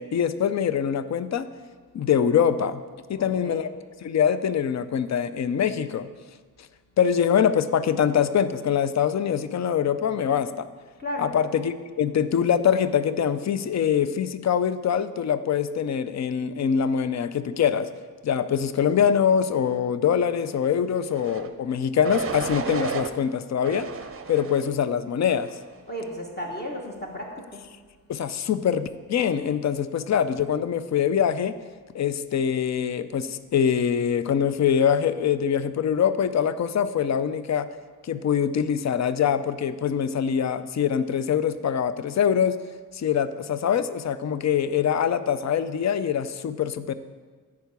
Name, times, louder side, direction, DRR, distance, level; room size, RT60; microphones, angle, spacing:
voice 1, 0.0-1.5 1.9-2.8 3.1-3.7 4.0-6.1 7.0-10.7 11.2-17.9 18.2-23.9 24.3-25.5 28.1-31.5 31.9-37.7 38.0-42.6 42.9-46.9, left 8 dB, 50° left, 13 dB, 0.4 m, -24 dB
voice 2, 3.2-3.6 11.0-11.3 25.9-27.6, equal, 30° left, 0 dB, 1.2 m, -34 dB
sound 1, 21.1-21.5 22.0-23.1 23.6-24.7 25.2-25.7, right 5 dB, 40° right, 0.6 m, -33 dB
10.5 x 4.8 x 8.2 m, 1.4 s
wide cardioid pair, 175°, 35 cm